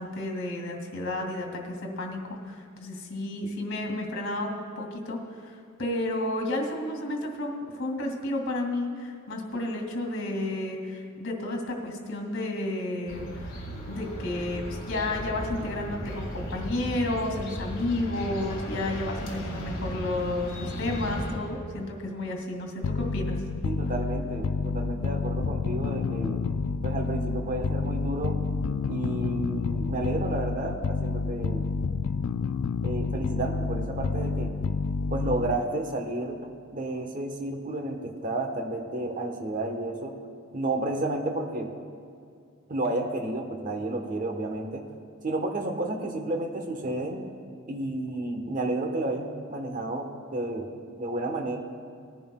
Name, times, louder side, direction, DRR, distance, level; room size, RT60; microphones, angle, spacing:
voice 1, 0.0-13.5 13.9-23.4, left 1 dB, 65° left, 2 dB, 2.2 m, -32 dB
sound 1, 13.1-21.3, equal, 45° left, 2.4 m, -36 dB
sound 2, 22.8-35.7, left 4 dB, 85° left, 0.3 m, -29 dB
voice 2, 23.6-26.4 26.8-28.4 28.9-31.7 32.8-34.5 35.1-36.4 36.7-40.2 40.5-41.7 42.7-44.8 45.2-47.2 47.7-50.7 51.0-51.6, right 2 dB, 40° right, 3 dB, 1.2 m, -31 dB
19.5 x 11.0 x 2.3 m, 2.4 s
head